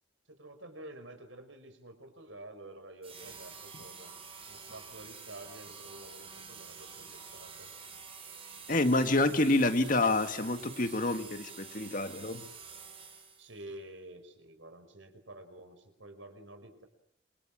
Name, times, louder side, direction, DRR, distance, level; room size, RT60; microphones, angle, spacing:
voice 1, 0.3-4.1 4.5-7.7 13.4-16.9, right 1 dB, 85° right, 5.4 m, -49 dB
sound 1, 3.0-13.6, right 5 dB, 30° right, 7.3 m, -48 dB
voice 2, 8.7-12.5, left 2 dB, 45° left, 2.0 m, -28 dB
28.0 x 25.0 x 7.6 m
head